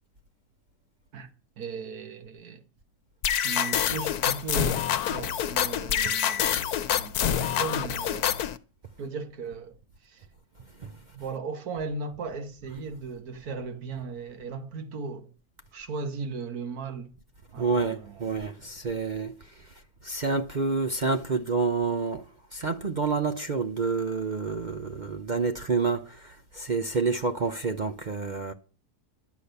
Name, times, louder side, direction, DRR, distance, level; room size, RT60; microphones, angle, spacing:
voice 1, 1.6-2.6 3.4-6.6 6.9-8.4 9.0-9.8 10.0-10.3 11.1-15.3 15.7-17.1 17.5-18.3, right 4 dB, 70° right, 1.8 m, -37 dB
sound 1, 3.2-8.6, left 9 dB, 75° left, 1.3 m, -26 dB
voice 2, 17.6-19.3 20.0-22.3 22.5-28.5, right 4 dB, 45° right, 0.6 m, -28 dB
12.0 x 8.4 x 6.7 m
omnidirectional pair, 1.6 m